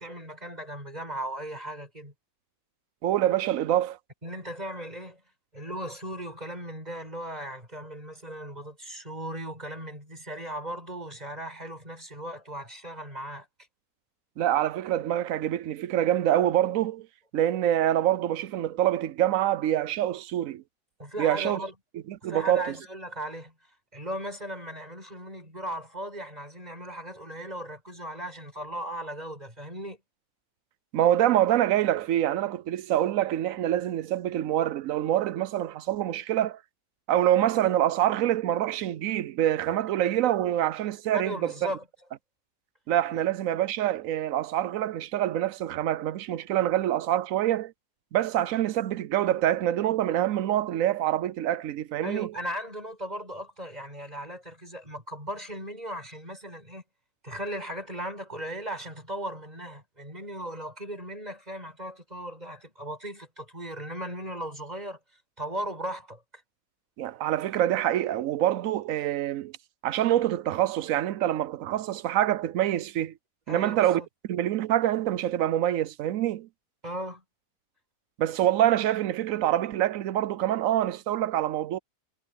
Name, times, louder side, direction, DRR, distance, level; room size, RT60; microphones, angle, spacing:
voice 1, 0.0-2.1 4.2-5.2 5.5-13.5 21.0-21.7 22.2-23.5 23.9-30.0 41.2-41.9 43.1-43.2 52.0-56.8 57.2-65.0 65.4-66.4 73.5-74.1 76.8-77.2, right 1 dB, 25° right, 6.9 m, -37 dB
voice 2, 3.0-4.0 14.4-17.1 17.3-20.6 21.2-21.6 22.1-22.7 30.9-36.6 37.1-41.5 42.9-47.7 48.1-52.3 67.0-69.6 69.8-73.1 73.5-76.5 78.2-81.8, right 12 dB, 70° right, 1.0 m, -26 dB
omnidirectional pair, 1.5 m